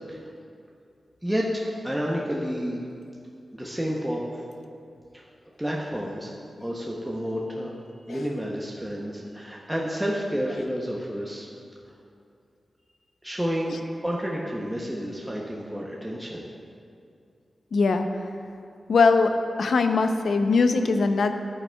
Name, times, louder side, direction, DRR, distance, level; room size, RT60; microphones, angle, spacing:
voice 1, 1.2-2.8 3.5-4.5 5.1-5.2 5.6-6.3 6.6-7.7 8.1-11.5 13.2-16.4, equal, 5° right, -3 dB, 0.6 m, -30 dB
voice 2, 17.7-18.1 18.9-19.3 19.6-21.3, left 4 dB, 85° left, 7 dB, 0.5 m, -21 dB
11.0 x 8.8 x 2.2 m, 2.4 s
wide cardioid pair, 135°, 0 cm